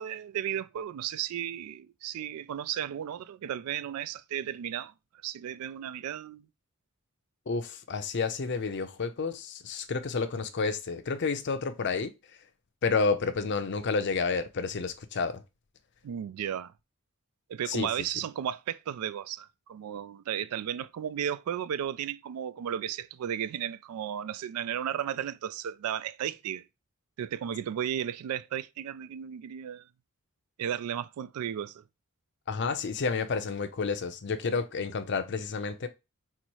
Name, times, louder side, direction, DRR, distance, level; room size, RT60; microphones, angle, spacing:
voice 1, 0.0-4.9 5.2-6.5 16.0-16.7 17.5-26.6 27.2-29.9 30.6-31.8, right 9 dB, 90° right, 0.3 m, -34 dB
voice 2, 7.5-12.1 12.8-15.4 17.7-17.9 32.5-35.9, left 4 dB, 55° left, 0.5 m, -30 dB
4.1 x 2.0 x 4.5 m
head